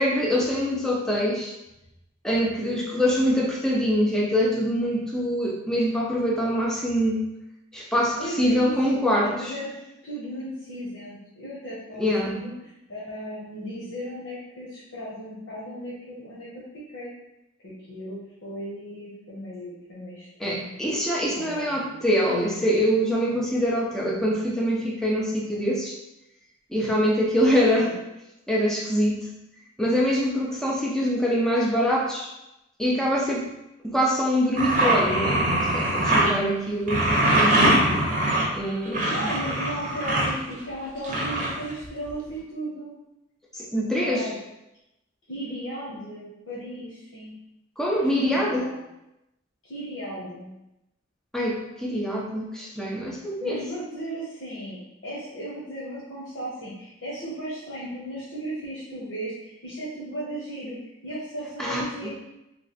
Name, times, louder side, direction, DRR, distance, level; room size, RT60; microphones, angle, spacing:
voice 1, 0.0-1.5 2.2-7.2 7.7-9.5 12.0-12.4 20.4-26.0 26.7-27.9 28.5-29.2 29.8-32.3 32.8-33.5 33.8-37.6 38.5-39.3 43.5-44.3 47.8-48.7 51.3-53.6 61.6-62.1, equal, 5° left, -3 dB, 0.5 m, -24 dB
voice 2, 8.2-8.7 9.2-9.7 10.0-17.1 17.6-20.7 21.3-22.1 27.8-28.0 39.1-42.9 43.9-44.3 45.3-47.3 48.0-48.8 49.6-50.5 53.4-60.8 61.0-62.1, right 1 dB, 85° left, -8 dB, 0.9 m, -36 dB
sound 1, 34.6-36.3 36.9-40.3 41.0-42.1, right 1 dB, 40° right, 0.7 m, -22 dB
3.2 x 2.1 x 4.0 m, 0.89 s
head